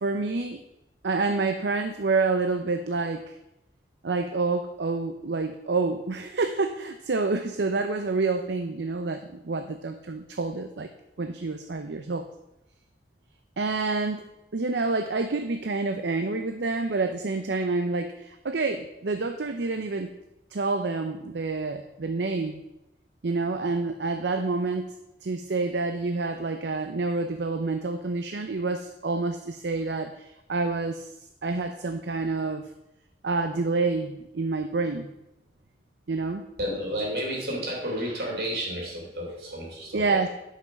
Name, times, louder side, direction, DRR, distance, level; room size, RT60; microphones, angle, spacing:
voice 1, 0.0-0.6 1.0-3.3 4.0-10.9 11.2-12.3 13.6-14.2 14.5-20.1 20.5-22.6 23.2-24.9 25.2-31.1 31.4-32.6 33.2-35.1 36.1-36.4 39.9-40.3, right 3 dB, 75° right, 7 dB, 0.6 m, -28 dB
voice 2, 36.6-40.3, equal, 60° right, -2 dB, 3.2 m, -31 dB
10.5 x 5.8 x 5.9 m, 0.89 s
head